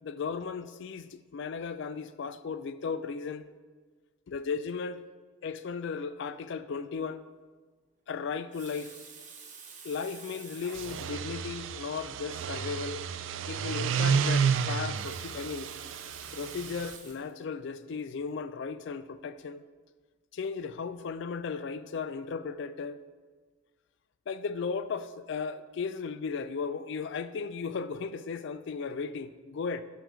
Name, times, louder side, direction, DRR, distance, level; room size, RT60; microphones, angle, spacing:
voice 1, 0.0-3.5 4.3-5.0 5.4-7.2 8.1-9.0 9.8-13.0 13.5-15.7 16.3-19.6 20.3-23.0 24.3-29.8, left 5 dB, 60° left, 13 dB, 0.3 m, -36 dB
Water tap faucet, 8.3-11.2 12.0-12.1 12.4-12.5 14.7-17.3 18.0-18.2, right 5 dB, 35° right, 0.9 m, -49 dB
sound 1, 10.7-17.0, right 6 dB, 65° right, 0.3 m, -31 dB
6.2 x 5.1 x 4.8 m, 1.4 s
head